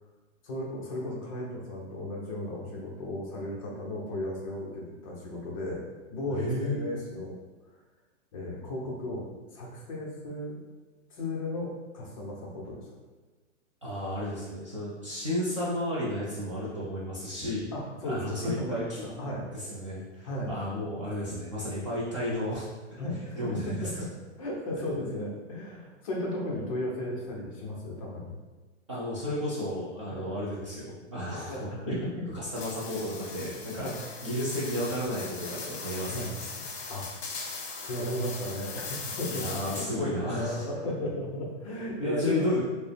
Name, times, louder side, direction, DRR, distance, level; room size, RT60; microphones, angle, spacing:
voice 1, 0.4-5.8 6.1-7.3 8.3-10.6 11.1-13.0 17.7-19.5 20.2-20.5 23.0-24.1 24.4-28.3 30.1-30.3 31.5-32.1 33.7-34.0 36.1-36.3 36.9-37.1 37.8-42.5, left 1 dB, 30° left, -3 dB, 0.6 m, -35 dB
voice 2, 6.3-6.8 13.8-17.7 18.0-18.8 19.5-23.0 23.3-23.9 28.9-32.0 32.3-33.9 34.2-36.6 39.3-40.7 42.0-42.6, left 1 dB, 25° right, -7 dB, 0.4 m, -33 dB
sound 1, 32.5-40.1, left 4 dB, 55° left, 0.8 m, -39 dB
4.5 x 2.0 x 3.3 m, 1.3 s
hypercardioid pair, 160°, 37 cm